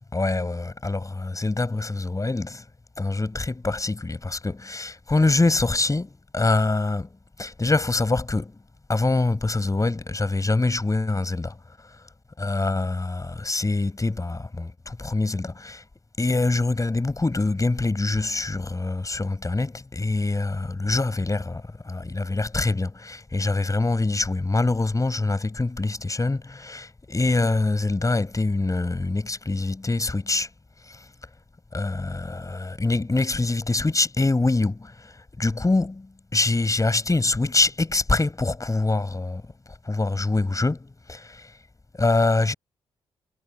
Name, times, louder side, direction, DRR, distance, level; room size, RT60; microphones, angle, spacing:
voice 1, 0.1-2.6 3.0-7.1 7.4-8.6 8.9-11.6 12.4-15.8 16.2-30.5 30.9-31.0 31.7-39.4 39.8-41.5 42.0-42.5, left 3 dB, 25° left, 6.5 m, -24 dB
hypercardioid pair, 40°, 13 cm